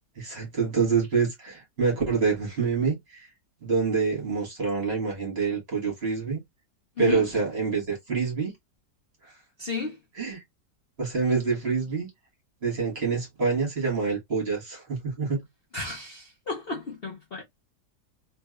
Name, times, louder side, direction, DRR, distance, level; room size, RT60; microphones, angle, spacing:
voice 1, 0.2-3.3 3.6-6.4 7.0-8.5 9.2-9.3 10.2-10.4 11.0-12.1 12.6-15.4, right 5 dB, 40° right, 1.8 m, -26 dB
voice 2, 9.6-10.0 15.7-17.4, left 4 dB, 45° left, 0.8 m, -33 dB
3.3 x 3.2 x 2.3 m
omnidirectional pair, 1.8 m